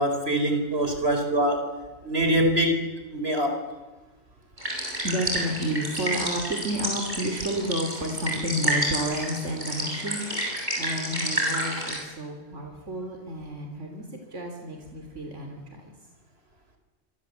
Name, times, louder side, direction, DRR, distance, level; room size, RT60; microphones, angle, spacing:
voice 1, 0.0-1.7 2.0-2.8 3.1-3.6, right 1 dB, 60° right, 6 dB, 4.9 m, -24 dB
sound 1, 4.6-12.0, equal, 40° right, 8.3 m, -30 dB
voice 2, 4.7-14.0 14.3-15.9, equal, 85° right, 3 dB, 3.8 m, -31 dB
26.0 x 24.5 x 8.3 m, 1.2 s
omnidirectional pair, 1.2 m